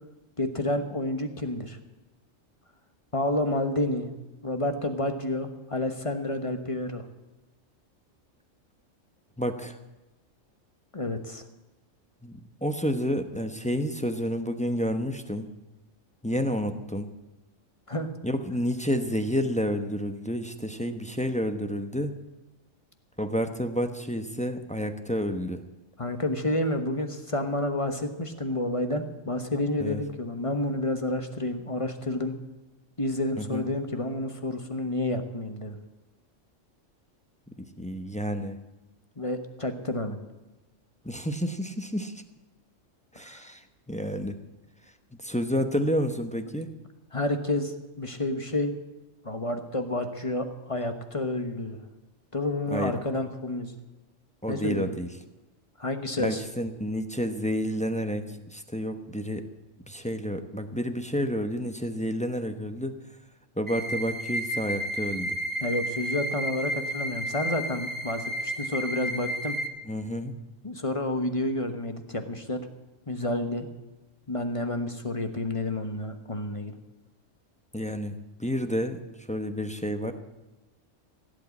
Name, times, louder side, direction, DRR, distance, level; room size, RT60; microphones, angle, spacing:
voice 1, 0.4-1.8 3.1-4.1 4.4-7.0 10.9-11.4 17.9-18.1 26.0-32.4 33.0-35.8 39.2-40.2 43.2-43.4 47.1-48.7 49.2-51.8 52.3-53.8 54.5-54.9 55.8-56.4 65.6-69.6 70.6-72.7 73.1-73.7 74.3-76.7, left 1 dB, 25° left, 7 dB, 1.2 m, -29 dB
voice 2, 9.4-9.8 12.2-15.5 16.2-17.1 18.2-22.1 23.2-25.6 29.8-30.0 33.4-33.6 37.6-38.6 41.0-42.2 43.1-44.4 44.8-46.7 52.7-53.0 54.4-55.1 56.2-59.4 59.8-63.2 63.5-65.4 69.8-70.3 77.7-80.1, equal, 5° left, 7 dB, 0.8 m, -30 dB
sound 1, 63.7-69.7, equal, 15° right, 1.6 m, -32 dB
16.5 x 8.4 x 8.4 m, 1.1 s
omnidirectional pair, 1.3 m